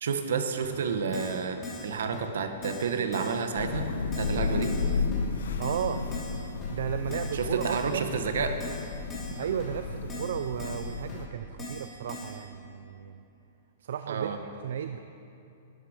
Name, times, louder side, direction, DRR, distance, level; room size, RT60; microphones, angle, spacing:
voice 1, 0.0-3.9 4.2-4.7 7.3-8.6 14.1-14.4, right 6 dB, 80° right, 7 dB, 1.1 m, -30 dB
Keyboard (musical), 0.6-0.7 1.1-1.4 1.6-1.9 2.1-2.2 2.6-2.9 3.1-3.4 3.6-3.7 4.1-4.4 4.6-4.8 5.1-5.2 5.6-5.8 6.1-6.3 6.6-6.7 7.1-7.3 7.6-7.8 8.1-8.2 8.6-8.8 9.1-9.3 9.6-9.7 10.1-10.3 10.6-10.8 11.1-11.2 11.6-11.8 12.1-12.3, left 1 dB, 15° left, 3.2 m, -40 dB
Thunder / Rain, 3.5-11.2, left 4 dB, 90° left, 0.9 m, -33 dB
voice 2, 5.6-6.1 6.7-8.1 9.2-13.2 13.8-15.0, right 8 dB, 65° right, 9 dB, 0.4 m, -34 dB
12.5 x 11.5 x 5.0 m, 2.8 s
hypercardioid pair, 170°, 0 cm